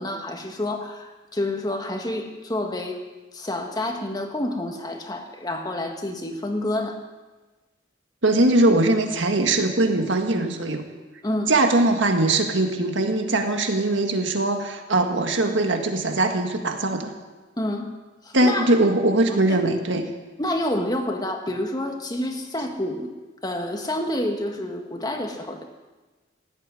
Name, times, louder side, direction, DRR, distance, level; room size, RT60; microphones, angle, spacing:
voice 1, 0.0-3.0 3.3-7.0 11.2-11.5 17.6-17.9 18.2-18.7 20.4-23.1 23.4-25.6, left 1 dB, 20° left, 4 dB, 1.6 m, -28 dB
voice 2, 8.2-10.8 11.5-17.1 18.3-20.0, right 2 dB, 70° right, 5 dB, 1.8 m, -21 dB
16.5 x 8.9 x 9.7 m, 1.2 s
head